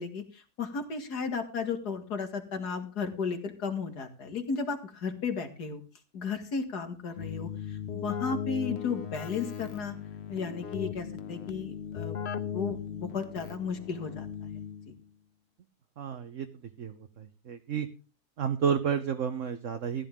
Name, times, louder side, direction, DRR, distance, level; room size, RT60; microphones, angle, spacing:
voice 1, 0.0-5.8 6.1-10.0 10.3-14.5 14.9-15.0, left 5 dB, 80° left, 6 dB, 2.6 m, -34 dB
Keyboard (musical), 7.2-15.0, left 8 dB, 50° left, 1.0 m, -38 dB
voice 2, 16.0-16.5 16.8-17.9 18.4-20.1, right 7 dB, 55° right, 7 dB, 1.2 m, -31 dB
15.5 x 11.0 x 3.7 m, 0.35 s
omnidirectional pair, 1.7 m